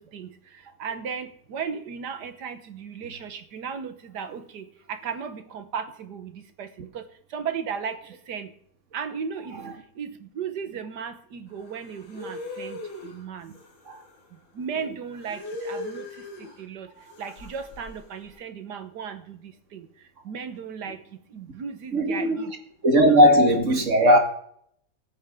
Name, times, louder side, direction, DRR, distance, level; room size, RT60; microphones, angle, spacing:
voice 1, 0.0-8.5 8.9-9.6 10.0-13.5 14.5-16.9 17.2-19.9 20.2-21.0 21.3-22.5 23.1-23.2, right 6 dB, 65° right, 1.7 m, -36 dB
sound 1, 11.6-14.3 15.1-16.6 17.0-18.3, left 2 dB, 80° left, 3.0 m, -39 dB
voice 2, 21.9-22.5 22.8-24.2, equal, 40° right, 2.1 m, -18 dB
20.0 x 8.7 x 3.7 m
omnidirectional pair, 2.0 m